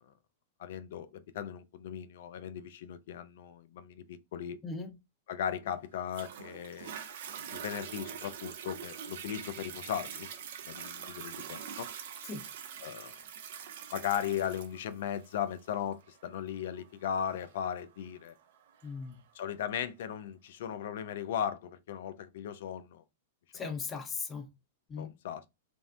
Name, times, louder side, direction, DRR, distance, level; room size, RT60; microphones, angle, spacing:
voice 1, 0.6-4.6 5.3-6.9 7.5-10.3 10.7-11.9 12.8-13.1 13.9-18.3 19.3-23.0 25.0-25.5, left 9 dB, 65° left, 0.3 m, -37 dB
Toilet flush, 6.1-19.1 19.7-19.8, right 8 dB, 60° right, 0.4 m, -44 dB
voice 2, 18.8-19.2 23.5-24.5 24.9-25.1, left 4 dB, 20° left, 0.6 m, -38 dB
2.6 x 2.0 x 2.4 m
hypercardioid pair, 105°, 0 cm